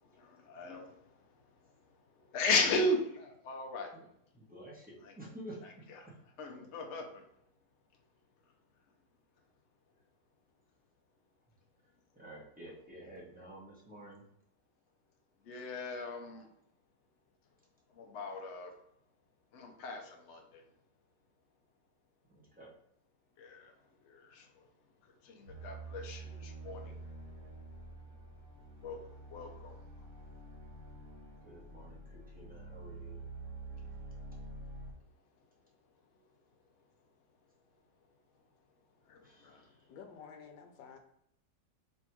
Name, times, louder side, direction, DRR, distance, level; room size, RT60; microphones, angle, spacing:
voice 1, 0.1-1.1 2.3-3.9 6.4-7.2 15.4-16.5 18.0-18.7 19.5-20.6 23.4-23.7 24.0-24.7 25.2-27.0 28.8-29.0 29.3-29.8 39.1-39.6, left 2 dB, 65° left, 2 dB, 0.7 m, -36 dB
voice 2, 4.3-5.6 6.1-6.2 6.5-6.6 11.8-14.2 22.3-22.7 31.4-33.3 39.2-39.9, right 1 dB, 10° right, -5 dB, 0.6 m, -51 dB
sound 1, 25.5-34.9, right 2 dB, 60° right, 1.3 m, -48 dB
voice 3, 39.9-41.0, left 6 dB, 85° left, 4 dB, 1.3 m, -51 dB
3.3 x 2.7 x 4.4 m, 0.72 s
omnidirectional pair, 1.9 m